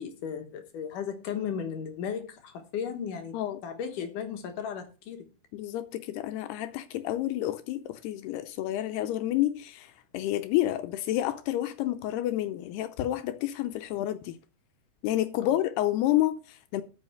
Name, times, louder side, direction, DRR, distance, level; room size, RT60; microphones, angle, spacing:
voice 1, 0.0-3.3 3.6-5.3 15.4-15.6, left 7 dB, 65° left, 2.4 m, -35 dB
voice 2, 5.5-14.4 15.0-16.8, left 14 dB, 80° left, 2.6 m, -29 dB
8.9 x 6.4 x 7.8 m
omnidirectional pair, 5.0 m